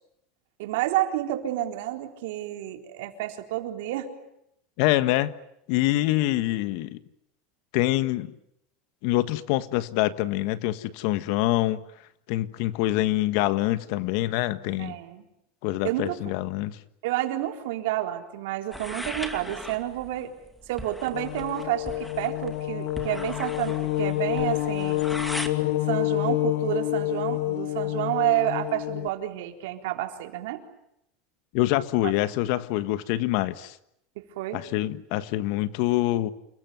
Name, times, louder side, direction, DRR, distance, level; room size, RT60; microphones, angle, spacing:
voice 1, 0.6-4.1 14.8-15.2 15.8-16.2 17.0-20.3 20.7-25.0 25.8-30.6 34.2-34.6, right 14 dB, 80° right, 4 dB, 4.1 m, -30 dB
voice 2, 4.8-5.3 5.7-7.0 7.7-8.3 9.0-11.8 12.3-14.9 15.6-16.8 31.5-33.8 34.5-36.3, left 16 dB, 65° left, 13 dB, 1.5 m, -25 dB
sound 1, 18.7-25.5, equal, 5° left, 2.6 m, -39 dB
sound 2, 21.1-29.1, left 16 dB, 80° left, 1.3 m, -28 dB
29.0 x 21.5 x 9.5 m, 0.79 s
supercardioid pair, 145°, 0 cm